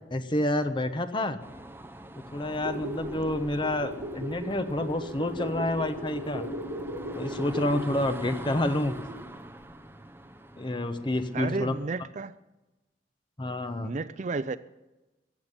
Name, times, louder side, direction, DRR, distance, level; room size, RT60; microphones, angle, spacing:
voice 1, 0.1-1.4 2.3-6.5 7.1-9.0 10.6-11.7 13.4-13.9, left 1 dB, 25° left, 10 dB, 0.9 m, -29 dB
sound 1, 1.4-11.9, right 1 dB, 10° right, 0.9 m, -45 dB
sound 2, 2.5-9.3 9.6-9.7, equal, 80° right, 4.2 m, -37 dB
voice 2, 11.3-12.4 13.8-14.6, right 3 dB, 40° right, 15 dB, 0.5 m, -32 dB
15.0 x 7.3 x 9.6 m, 1.0 s
head